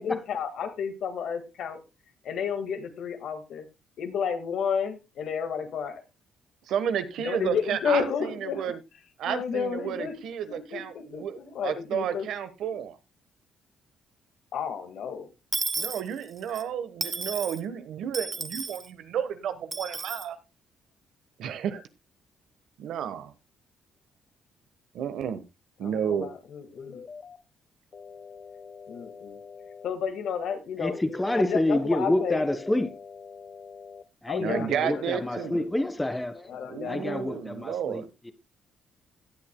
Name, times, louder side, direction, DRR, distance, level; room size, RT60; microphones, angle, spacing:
voice 1, 0.0-1.8 2.2-3.7 4.0-6.0 7.2-8.7 9.3-10.1 10.5-12.3 14.5-15.3 25.8-27.0 28.9-29.4 29.8-31.0 31.4-32.4 34.2-35.7 36.5-37.4, left 7 dB, 75° left, 1.7 m, -32 dB
voice 2, 6.7-8.8 9.2-13.0 15.8-20.4 21.4-21.8 22.8-23.3 24.9-25.4 25.8-26.3 34.4-35.6 36.7-38.1, right 8 dB, 80° right, 1.2 m, -32 dB
Dishes pots and pans / Coin (dropping), 15.5-16.6 17.0-17.6 18.1-18.9 19.7-20.3, right 3 dB, 30° right, 1.2 m, -33 dB
sound 1, 26.8-27.4 27.9-29.9 30.9-31.5 32.0-34.0, left 5 dB, 45° left, 1.0 m, -45 dB
voice 3, 30.8-32.9 34.2-36.5 36.8-38.3, left 1 dB, 10° left, 1.4 m, -28 dB
17.0 x 8.7 x 2.2 m
cardioid pair, 90°, 0 cm